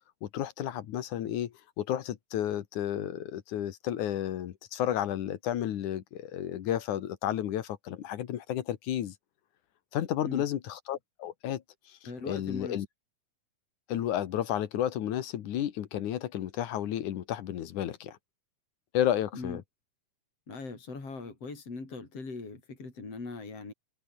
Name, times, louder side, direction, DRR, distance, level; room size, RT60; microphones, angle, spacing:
voice 1, 0.2-9.2 9.9-11.6 11.9-12.0 12.2-12.9 13.9-18.2 18.9-19.6, left 11 dB, 75° left, 2.9 m, -32 dB
voice 2, 12.0-12.8 19.3-19.6 20.5-23.7, left 3 dB, 50° left, 7.1 m, -40 dB
omnidirectional pair, 3.5 m